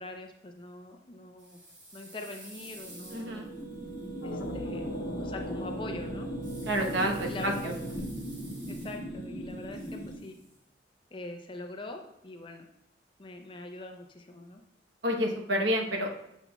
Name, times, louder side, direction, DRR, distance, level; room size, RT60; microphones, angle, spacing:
voice 1, 0.0-1.6 1.9-3.5 4.2-6.3 7.3-7.7 8.7-10.4 11.1-12.7 13.2-14.6, left 2 dB, 25° left, 4 dB, 0.5 m, -43 dB
sound 1, 1.4-4.4 6.4-9.2 9.5-10.6, right 1 dB, 85° right, 2.0 m, -51 dB
sound 2, 2.6-10.1, right 1 dB, 10° left, 1.5 m, -39 dB
voice 2, 3.1-3.5 6.7-7.7 15.0-16.1, equal, 70° right, 1 dB, 1.0 m, -29 dB
sound 3, 4.2-10.1, left 1 dB, 80° left, 0.6 m, -41 dB
7.1 x 5.8 x 2.3 m, 0.83 s
head